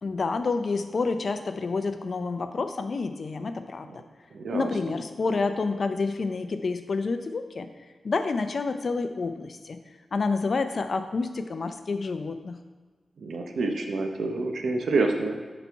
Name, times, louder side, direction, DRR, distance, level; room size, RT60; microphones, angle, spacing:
voice 1, 0.0-3.9 4.5-7.7 8.0-9.8 10.1-12.6, left 4 dB, 55° left, 9 dB, 0.5 m, -28 dB
voice 2, 4.3-4.7 13.2-15.4, right 3 dB, 80° right, 4 dB, 0.7 m, -27 dB
6.9 x 4.2 x 4.6 m, 1.4 s
cardioid pair, 75°, 0 cm